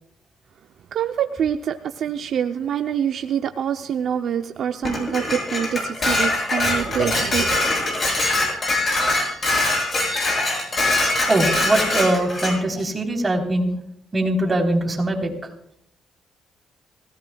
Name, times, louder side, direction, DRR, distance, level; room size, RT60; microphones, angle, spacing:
voice 1, 0.9-7.6, right 8 dB, 65° right, 7 dB, 0.6 m, -25 dB
Dishes pots and pans, 4.8-12.6, left 2 dB, 40° left, 7.7 m, -22 dB
voice 2, 11.3-13.7 14.1-15.3, right 1 dB, 25° right, 1 dB, 3.8 m, -21 dB
25.5 x 17.0 x 2.3 m, 0.69 s
cardioid pair, 90°, 0 cm